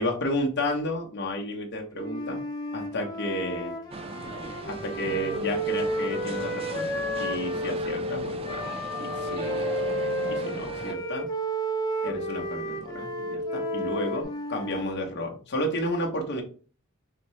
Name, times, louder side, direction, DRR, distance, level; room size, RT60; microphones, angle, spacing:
voice 1, 0.0-2.4 2.7-3.7 4.6-9.7 10.3-11.3 12.0-16.4, left 1 dB, 55° left, 1 dB, 0.8 m, -32 dB
Wind instrument woodwind instrument, 2.0-7.7 8.4-14.9, left 1 dB, 20° left, 0.8 m, -33 dB
sound 1, 3.9-10.9, right 2 dB, 30° right, 0.4 m, -39 dB
sound 2, 5.3-14.2, left 1 dB, 90° right, 1.6 m, -33 dB
4.2 x 2.7 x 3.1 m, 0.39 s
head